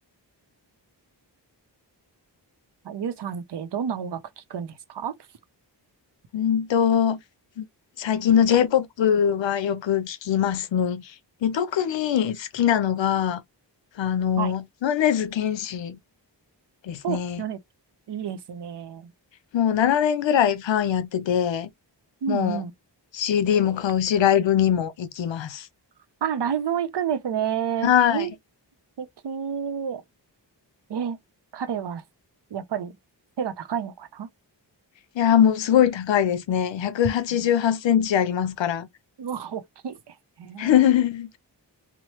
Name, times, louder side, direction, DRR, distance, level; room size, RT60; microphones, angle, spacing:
voice 1, 2.8-5.1 14.4-14.5 17.0-17.6 18.1-19.1 22.2-22.7 26.2-28.3 29.0-30.0 30.9-31.2 31.5-32.0 32.5-33.0 33.4-34.3 37.3-37.5 39.2-41.0, right 8 dB, 65° right, 0.6 m, -30 dB
voice 2, 6.3-7.2 7.6-7.7 8.0-11.0 11.4-13.4 14.0-16.0 16.8-17.4 19.5-21.7 22.3-22.6 23.1-25.7 27.8-28.3 35.2-38.9 40.6-41.4, left 9 dB, 85° left, 0.6 m, -22 dB
3.0 x 2.0 x 2.8 m
wide cardioid pair, 70°, 44 cm